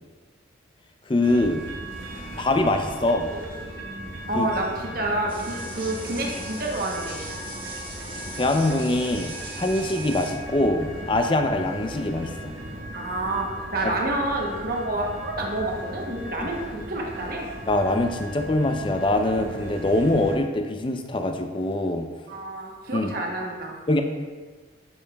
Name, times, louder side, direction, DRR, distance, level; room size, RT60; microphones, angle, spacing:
voice 1, 1.1-1.7 2.4-3.3 4.3-4.5 8.4-12.5 16.4-16.5 17.7-22.1 22.9-23.1 23.9-24.0, left 1 dB, 25° left, 5 dB, 0.4 m, -23 dB
sound 1, 1.2-20.4, right 1 dB, 85° right, 1.3 m, -37 dB
voice 2, 4.3-7.2 12.9-17.5 22.3-23.8, right 2 dB, 50° right, -1 dB, 0.8 m, -28 dB
sound 2, 5.3-10.3, right 1 dB, 25° right, 1.3 m, -39 dB
8.6 x 6.6 x 2.2 m, 1.4 s
head